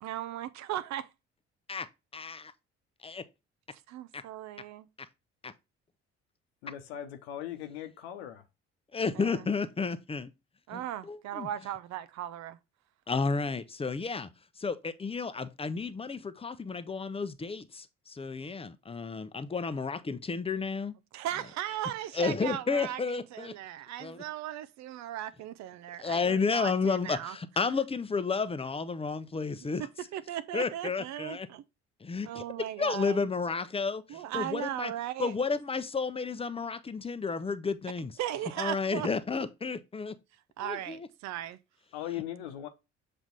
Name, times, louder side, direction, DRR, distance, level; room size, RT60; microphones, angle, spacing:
voice 1, 0.0-1.1 3.7-4.9 9.1-9.4 10.7-12.6 21.1-23.0 23.3-27.4 29.6-29.7 30.1-31.6 32.2-33.3 34.1-35.3 38.2-39.4 40.6-41.6, right 12 dB, 55° right, 0.7 m, -37 dB
voice 2, 2.1-2.5 3.0-3.3 4.1-4.2 5.4-5.5 8.9-10.3 10.7-11.5 13.1-14.3 14.6-20.9 22.1-23.5 24.0-24.2 26.0-29.9 30.5-31.5 32.0-32.4 32.8-34.9 35.2-38.1 38.6-40.2 40.6-41.1, left 4 dB, 15° left, 0.7 m, -32 dB
voice 3, 6.6-8.4 41.9-42.7, left 11 dB, 70° left, 1.0 m, -39 dB
7.3 x 3.3 x 4.0 m
figure-of-eight pair, 50°, 34 cm